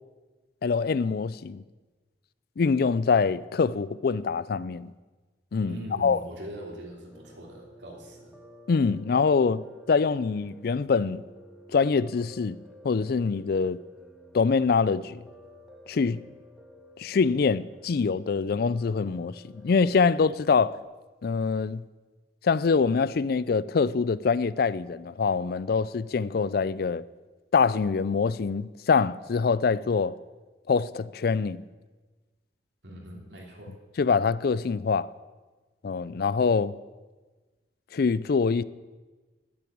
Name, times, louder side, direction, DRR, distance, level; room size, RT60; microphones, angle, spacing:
voice 1, 0.6-1.6 2.6-4.9 5.5-6.2 8.7-11.2 11.7-12.6 12.8-13.8 14.3-15.2 15.9-16.2 17.0-20.8 21.2-21.8 22.4-27.0 27.5-30.2 30.7-31.6 34.0-35.1 35.8-36.7 37.9-38.6, left 5 dB, 60° left, 0.4 m, -24 dB
voice 2, 5.7-8.3 32.8-33.7, equal, 80° right, 3.1 m, -41 dB
Piano, 7.1-20.8, equal, 5° right, 1.6 m, -52 dB
10.5 x 9.5 x 8.6 m
head